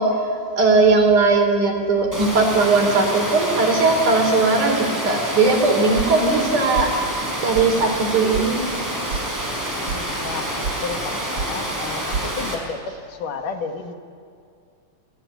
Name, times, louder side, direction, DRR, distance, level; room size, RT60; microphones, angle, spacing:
voice 1, 0.0-6.9 7.4-8.7 9.1-9.7, right 3 dB, 65° right, 3 dB, 5.6 m, -19 dB
Water, 2.1-12.5, right 1 dB, 5° right, 5.6 m, -28 dB
sound 1, 6.0-6.5 6.7-7.3 7.5-7.7 8.0-8.5 8.7-9.2 9.5-10.0 10.3-10.8 11.0-11.5 11.8-12.3, right 5 dB, 50° right, 2.1 m, -29 dB
voice 2, 9.8-13.9, left 5 dB, 70° left, 5 dB, 3.3 m, -32 dB
29.5 x 21.0 x 9.5 m, 2.4 s
omnidirectional pair, 3.9 m